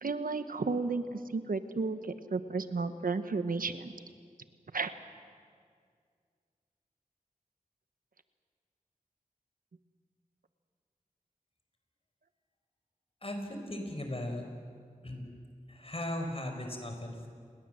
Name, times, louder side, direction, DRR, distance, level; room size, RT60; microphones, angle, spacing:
voice 1, 0.0-3.9 4.7-4.9, right 4 dB, 90° right, 10 dB, 1.1 m, -33 dB
voice 2, 13.2-14.4 15.0-15.2 15.7-17.3, left 1 dB, 45° left, 4 dB, 4.7 m, -37 dB
28.0 x 21.0 x 7.7 m, 2.1 s
wide cardioid pair, 55°, 14 cm